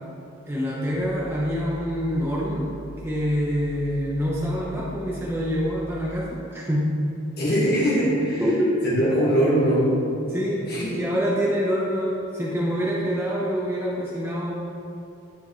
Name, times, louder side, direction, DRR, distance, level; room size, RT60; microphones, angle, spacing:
voice 1, 0.5-2.7 3.0-6.9 8.4-8.8 10.3-14.5, equal, 10° right, -6 dB, 1.0 m, -26 dB
sound 1, 0.9-6.2, equal, 55° right, 1.9 m, -42 dB
voice 2, 7.4-8.4 8.8-10.0 10.6-11.0, equal, 50° left, -8 dB, 1.7 m, -21 dB
10.0 x 9.2 x 3.2 m, 2.7 s
head